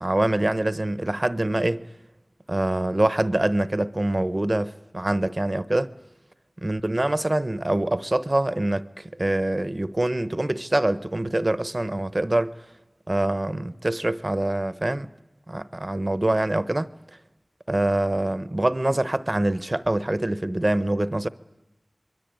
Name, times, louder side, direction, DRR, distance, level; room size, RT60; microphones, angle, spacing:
voice 1, 0.0-1.9 2.5-5.9 6.6-12.6 13.1-15.1 15.5-16.9 17.7-21.3, right 1 dB, 40° right, 0.9 m, -24 dB
26.5 x 22.0 x 9.2 m
wide cardioid pair, 55°, 0 cm